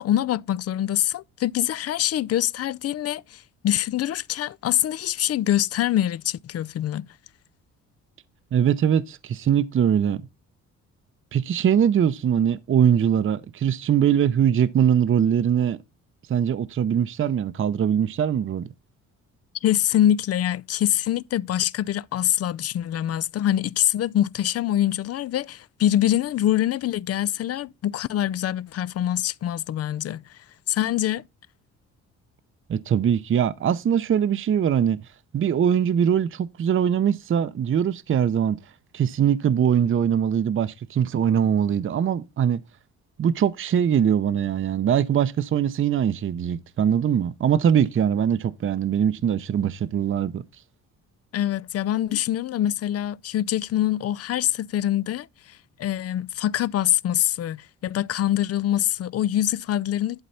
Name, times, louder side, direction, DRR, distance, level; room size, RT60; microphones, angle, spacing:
voice 1, 0.0-7.1 19.6-30.2 30.7-31.2 51.3-55.3 55.8-60.2, left 12 dB, 55° left, 0.5 m, -24 dB
voice 2, 8.5-10.2 11.3-15.8 16.3-18.7 32.7-35.0 35.3-38.6 38.9-42.6 43.2-50.4, right 8 dB, 45° right, 0.7 m, -22 dB
11.5 x 4.0 x 5.7 m
cardioid pair, 90°, 30 cm